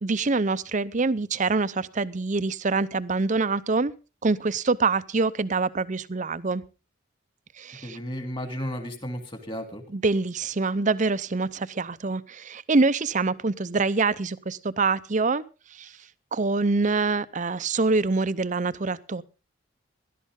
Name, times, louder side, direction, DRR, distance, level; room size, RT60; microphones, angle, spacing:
voice 1, 0.0-3.9 4.2-6.6 7.6-8.0 9.9-15.4 15.7-15.9 16.3-19.2, right 3 dB, 40° right, 0.6 m, -25 dB
voice 2, 7.8-9.8, equal, 25° left, 2.8 m, -33 dB
17.5 x 12.0 x 3.7 m
head